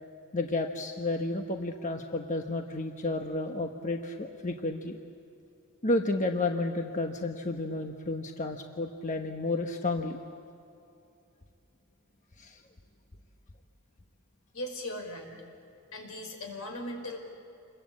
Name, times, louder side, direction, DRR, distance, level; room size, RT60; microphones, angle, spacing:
voice 1, 0.3-5.0 5.8-10.2 12.4-12.6, left 2 dB, 35° left, 4 dB, 1.1 m, -31 dB
voice 2, 14.5-15.3 15.9-17.2, left 1 dB, 75° left, 3 dB, 5.3 m, -38 dB
28.0 x 22.0 x 8.7 m, 2.7 s
head